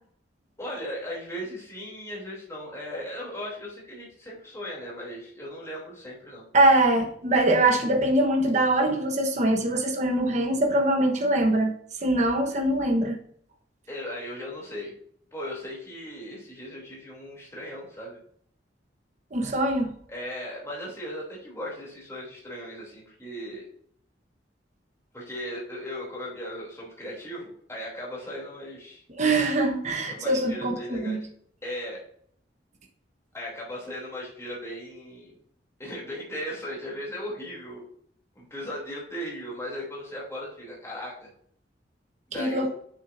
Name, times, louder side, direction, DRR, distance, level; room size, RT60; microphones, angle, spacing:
voice 1, 0.6-6.4 13.9-14.9 15.3-18.2 20.1-23.7 25.1-29.0 30.1-31.2 31.6-32.0 33.3-35.3 35.8-37.8 38.3-41.3 42.3-42.7, equal, 15° left, -4 dB, 2.9 m, -37 dB
voice 2, 6.5-11.7 12.0-13.2 19.3-19.9 29.2-31.2 42.4-42.7, right 1 dB, 40° right, 2 dB, 1.1 m, -23 dB
8.5 x 6.5 x 2.6 m, 0.63 s
head